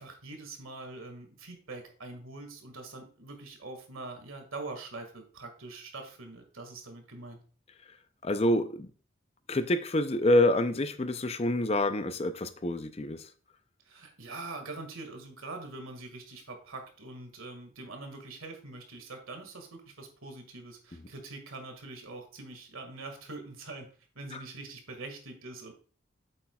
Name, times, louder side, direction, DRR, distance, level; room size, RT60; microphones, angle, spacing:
voice 1, 0.0-7.4 13.9-25.7, right 3 dB, 85° right, 5 dB, 1.9 m, -44 dB
voice 2, 8.2-8.9 9.5-13.2 24.3-24.4, left 1 dB, 30° left, 10 dB, 0.5 m, -27 dB
8.7 x 7.7 x 2.3 m, 0.40 s
head